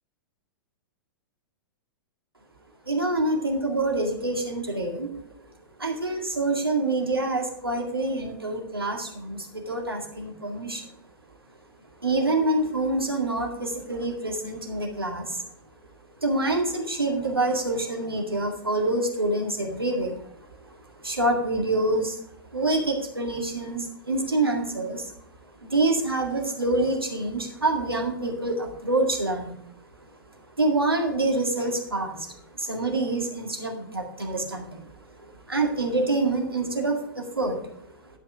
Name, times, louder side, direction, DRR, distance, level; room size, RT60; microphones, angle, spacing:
voice 1, 2.9-5.1 5.8-10.9 12.0-15.4 16.2-20.3 20.6-22.3 22.5-25.1 25.6-29.6 30.0-30.1 30.6-34.9 35.2-37.9, right 2 dB, 85° right, 2 dB, 2.0 m, -26 dB
11.5 x 5.7 x 4.7 m, 0.71 s
figure-of-eight pair, 105°, 12 cm